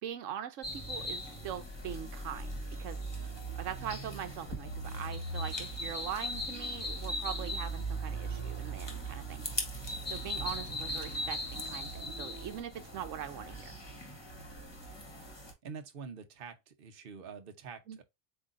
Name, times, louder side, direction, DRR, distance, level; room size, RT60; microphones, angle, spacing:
voice 1, 0.0-9.8 10.1-13.7 17.9-18.0, right 9 dB, 80° right, 1.0 m, -42 dB
sound 1, 0.6-15.5, right 1 dB, 20° left, 1.2 m, -39 dB
voice 2, 15.6-18.0, right 5 dB, 50° right, 1.0 m, -46 dB
7.8 x 2.7 x 2.5 m
omnidirectional pair, 1.3 m